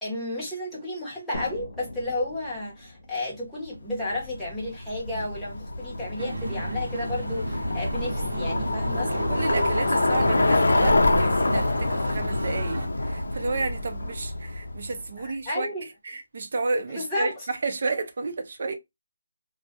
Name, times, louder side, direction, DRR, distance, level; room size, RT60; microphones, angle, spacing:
voice 1, 0.0-9.1 15.2-15.9 16.9-17.5, left 1 dB, 5° left, 0.7 m, -32 dB
sound 1, 1.3-4.8, left 1 dB, 40° left, 0.8 m, -42 dB
Bicycle, 4.1-15.0, left 2 dB, 90° left, 0.4 m, -26 dB
sound 2, 6.2-12.9, right 2 dB, 85° right, 0.7 m, -35 dB
voice 2, 9.1-15.7 16.0-18.8, right 3 dB, 45° right, 0.5 m, -31 dB
2.1 x 2.1 x 2.7 m
hypercardioid pair, 175°, 0 cm